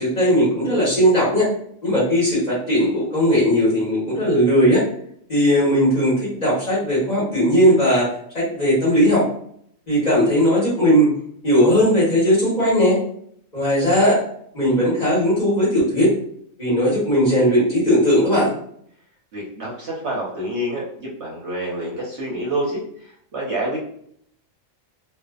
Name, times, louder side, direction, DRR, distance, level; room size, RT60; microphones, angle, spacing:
voice 1, 0.0-1.5 1.8-4.8 5.3-8.1 8.3-9.2 9.9-11.1 11.4-13.0 13.5-14.2 14.5-16.1 16.6-18.5, equal, 30° left, -8 dB, 1.1 m, -18 dB
voice 2, 19.3-23.8, right 1 dB, 60° right, -4 dB, 0.9 m, -28 dB
2.5 x 2.3 x 2.3 m, 0.66 s
omnidirectional pair, 1.5 m